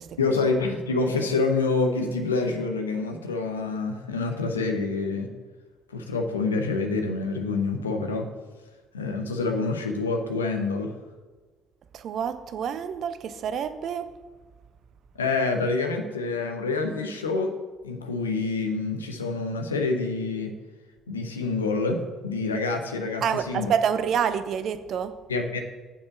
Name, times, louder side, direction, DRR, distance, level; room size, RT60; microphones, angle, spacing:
voice 1, 0.2-5.3 5.9-8.3 8.9-10.9 15.2-17.5 17.8-20.5 21.1-23.7 25.3-25.6, left 3 dB, 80° left, 0.8 m, -27 dB
voice 2, 11.9-14.2 23.2-25.2, right 8 dB, 50° right, 0.5 m, -28 dB
7.2 x 4.9 x 7.1 m
figure-of-eight pair, 50°, 0 cm